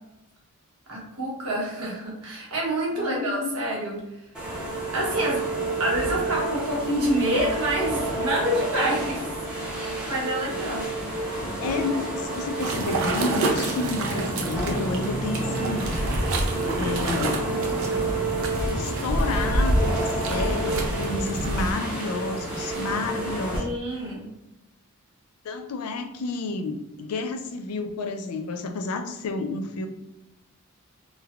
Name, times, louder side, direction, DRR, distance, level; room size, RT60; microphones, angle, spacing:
voice 1, 0.9-4.0 4.9-5.4 5.8-9.3 9.7-10.9 23.5-24.2, right 1 dB, 85° right, -3 dB, 1.0 m, -27 dB
voice 2, 2.9-3.8 6.0-6.3 10.4-10.9 11.6-16.1 16.5-17.3 18.7-23.7 25.4-29.9, left 3 dB, 85° left, 7 dB, 0.4 m, -31 dB
sound 1, 4.3-23.6, right 2 dB, 5° right, 0.6 m, -30 dB
sound 2, 12.6-21.7, right 1 dB, 65° right, 0.5 m, -27 dB
3.1 x 2.1 x 2.3 m, 0.93 s
head